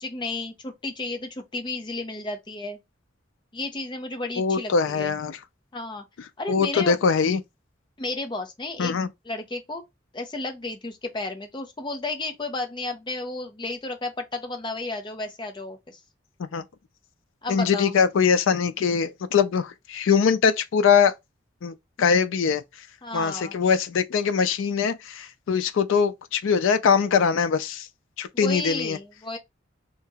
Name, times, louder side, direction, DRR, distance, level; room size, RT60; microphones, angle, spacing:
voice 1, 0.0-2.8 3.5-5.2 5.7-6.0 6.4-7.0 8.0-9.8 10.1-16.0 17.4-17.9 23.0-23.6 28.3-29.4, left 2 dB, 25° left, 0.6 m, -33 dB
voice 2, 4.4-5.4 6.5-7.4 8.8-9.1 16.5-16.6 17.5-21.1 21.6-22.6 23.1-27.9 28.2-29.0, left 6 dB, 85° left, 0.4 m, -22 dB
2.8 x 2.8 x 3.4 m
head